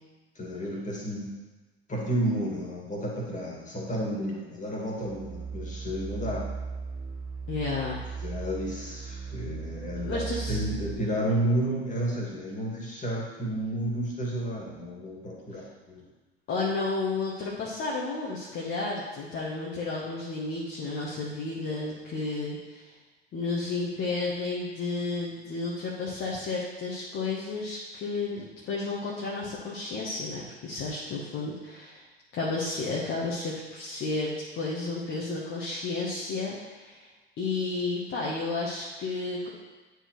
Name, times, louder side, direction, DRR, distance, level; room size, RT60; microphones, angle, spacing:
voice 1, 0.4-1.3 1.9-6.5 8.2-10.2 10.5-16.0, right 1 dB, 25° left, -3 dB, 2.2 m, -31 dB
sound 1, 5.0-10.9, right 5 dB, 30° right, 1.3 m, -37 dB
voice 2, 7.5-8.0 10.0-10.6 16.5-22.9 23.3-32.0 32.3-37.1 37.4-39.5, left 3 dB, 40° left, -4 dB, 1.3 m, -32 dB
9.5 x 4.7 x 3.1 m, 1.3 s
figure-of-eight pair, 70°, 32 cm